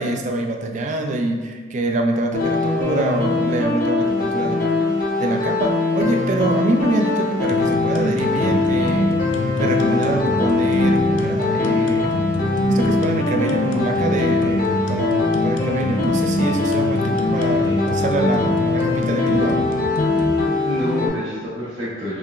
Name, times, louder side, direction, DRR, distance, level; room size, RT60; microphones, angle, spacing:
voice 1, 0.0-4.8 5.2-9.1 9.6-12.1 12.7-19.7, right 2 dB, 40° right, 4 dB, 0.3 m, -24 dB
sound 1, 2.3-21.1, left 3 dB, 45° left, 0.8 m, -22 dB
sound 2, 7.5-20.3, left 1 dB, 70° left, 0.4 m, -25 dB
voice 2, 17.3-17.8 20.6-22.2, left 1 dB, 85° right, -13 dB, 1.2 m, -28 dB
4.6 x 3.4 x 2.3 m, 1.5 s
head